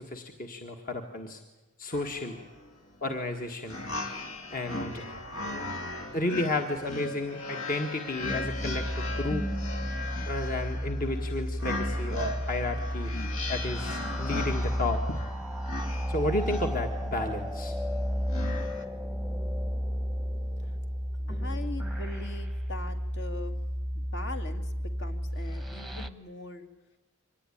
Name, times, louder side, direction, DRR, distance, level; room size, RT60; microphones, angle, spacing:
voice 1, 0.0-1.4 1.8-2.4 3.0-3.8 4.5-5.0 6.1-9.5 10.3-13.1 13.5-15.2 16.1-17.7, left 2 dB, 45° left, 4 dB, 1.6 m, -32 dB
sound 1, 1.9-18.8, left 2 dB, 75° left, 2.5 m, -38 dB
sound 2, 8.2-26.1, equal, ahead, 1.0 m, -32 dB
voice 2, 21.2-26.7, left 2 dB, 60° left, 6 dB, 2.2 m, -42 dB
24.5 x 19.5 x 10.0 m, 1.2 s
head